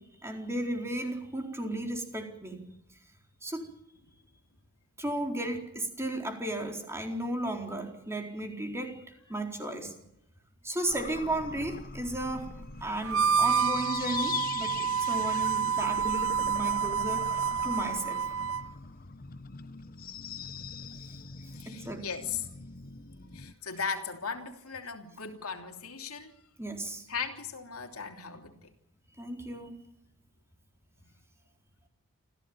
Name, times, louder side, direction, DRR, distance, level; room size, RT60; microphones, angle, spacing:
voice 1, 0.2-2.6 3.4-3.6 5.0-9.0 9.3-9.9 10.6-12.5 12.8-18.3 21.6-22.0 26.6-27.1 29.2-29.7, right 1 dB, 10° right, 3 dB, 4.2 m, -34 dB
sound 1, 10.9-23.5, left 5 dB, 40° left, 1.1 m, -42 dB
Harmonica, 13.0-18.7, right 6 dB, 65° right, 0.8 m, -28 dB
voice 2, 21.5-22.4 23.3-26.3 27.1-28.7, left 6 dB, 75° left, 4 dB, 3.1 m, -37 dB
27.5 x 15.5 x 8.9 m, 0.83 s
head